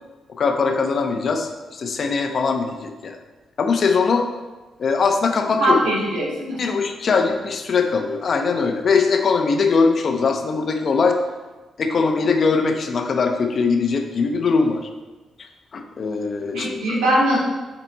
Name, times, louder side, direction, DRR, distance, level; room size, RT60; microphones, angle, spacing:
voice 1, 0.4-3.2 3.6-4.3 4.8-5.8 6.6-11.2 11.8-14.9 15.4-17.0, left 4 dB, 55° left, 5 dB, 0.9 m, -21 dB
voice 2, 5.6-6.6 16.5-17.4, right 1 dB, 85° right, -5 dB, 2.3 m, -20 dB
7.7 x 4.3 x 4.1 m, 1.2 s
supercardioid pair, 50°, 0 cm